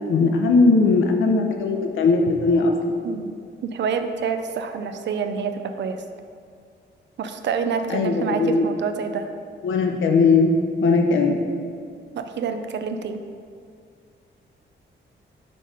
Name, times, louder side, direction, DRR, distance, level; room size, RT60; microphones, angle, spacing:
voice 1, 0.1-2.7 7.9-8.6 9.6-11.4, left 4 dB, 70° left, 3 dB, 0.7 m, -19 dB
voice 2, 3.6-6.0 7.2-9.3 12.1-13.2, right 6 dB, 60° right, 7 dB, 0.4 m, -27 dB
5.4 x 4.2 x 4.9 m, 2.2 s
wide cardioid pair, 170°, 21 cm